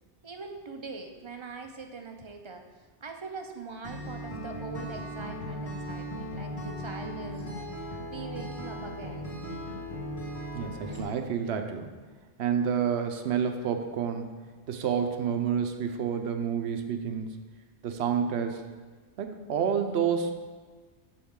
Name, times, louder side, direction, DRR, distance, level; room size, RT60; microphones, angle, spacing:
voice 1, 0.2-9.3, right 4 dB, 40° right, 5 dB, 0.4 m, -42 dB
Acoustic guitar, 3.8-11.0, equal, 45° left, 1.8 m, -37 dB
voice 2, 10.5-11.9 12.4-14.3 14.7-17.3 17.8-18.6 19.2-20.3, right 7 dB, 70° right, 7 dB, 0.9 m, -29 dB
7.2 x 7.0 x 3.7 m, 1.4 s
omnidirectional pair, 1.2 m